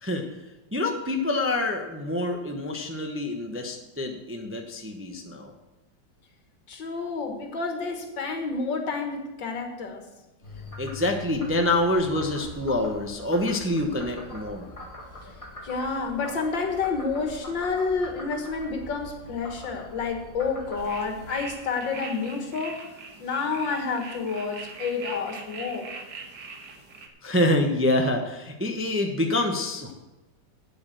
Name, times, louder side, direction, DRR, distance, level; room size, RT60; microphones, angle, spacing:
voice 1, 0.7-5.5 10.8-14.7 27.2-29.9, left 1 dB, 10° right, 3 dB, 0.6 m, -26 dB
voice 2, 6.7-10.0 15.6-22.8 23.2-25.9, left 4 dB, 80° left, 4 dB, 2.3 m, -29 dB
Frog, 10.4-21.6, left 2 dB, 20° left, 1.8 m, -43 dB
sound 1, 20.8-27.1, right 4 dB, 65° right, 1.9 m, -42 dB
8.8 x 8.1 x 7.6 m, 1.0 s
omnidirectional pair, 2.0 m